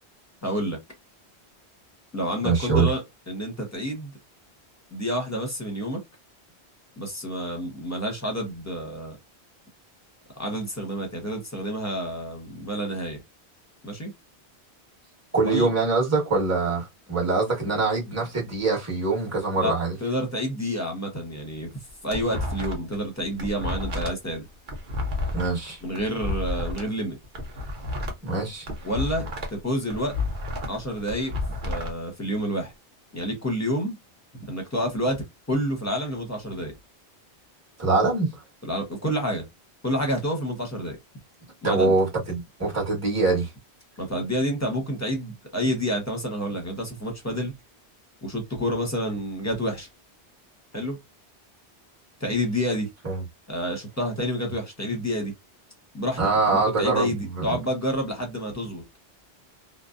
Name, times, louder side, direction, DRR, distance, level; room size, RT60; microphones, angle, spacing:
voice 1, 0.4-0.8 2.1-3.0 3.3-4.1 4.9-6.0 7.0-9.2 10.4-13.2 13.8-14.1 15.4-15.7 19.6-19.7 20.0-21.7 22.0-24.4 25.8-27.2 28.8-29.2 29.5-30.1 30.7-31.3 31.6-32.7 33.1-34.0 34.4-36.8 38.6-39.5 39.8-41.0 41.6-41.9 44.0-47.5 48.2-49.9 50.7-51.0 52.2-52.9 53.5-55.3 55.9-56.2 56.5-58.8, equal, 15° left, 0.8 m, -29 dB
voice 2, 2.4-2.9 15.3-19.9 25.3-25.8 28.2-28.7 37.8-38.3 41.6-43.5 53.0-53.2 56.2-57.6, right 3 dB, 15° right, 1.1 m, -24 dB
sound 1, 21.7-23.0 23.2-26.8 27.2-29.6 29.9-31.9, left 2 dB, 50° right, 0.8 m, -31 dB
2.6 x 2.0 x 2.3 m
omnidirectional pair, 1.1 m